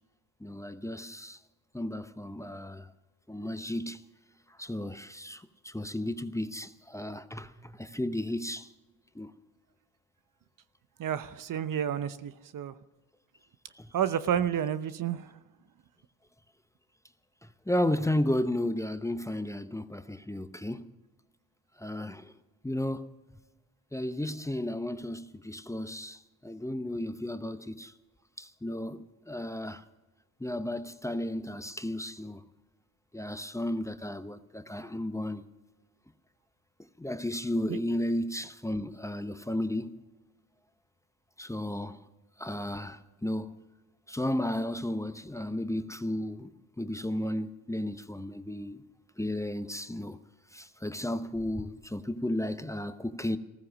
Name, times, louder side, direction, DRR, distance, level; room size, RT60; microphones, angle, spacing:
voice 1, 0.4-1.4 1.7-2.9 3.3-4.0 4.6-8.7 9.1-9.3 13.7-13.9 17.4-20.8 21.8-22.3 22.6-23.1 23.9-27.9 28.4-29.8 30.4-32.4 33.1-35.5 37.0-40.0 41.4-42.0 42.4-43.6 44.1-46.5 46.8-48.8 49.2-50.2 50.5-53.4, left 1 dB, 5° left, 0.9 m, -33 dB
voice 2, 11.0-12.8 13.9-15.3 37.7-37.8, right 9 dB, 50° right, 0.9 m, -30 dB
15.5 x 14.5 x 6.3 m
supercardioid pair, 65°, 41 cm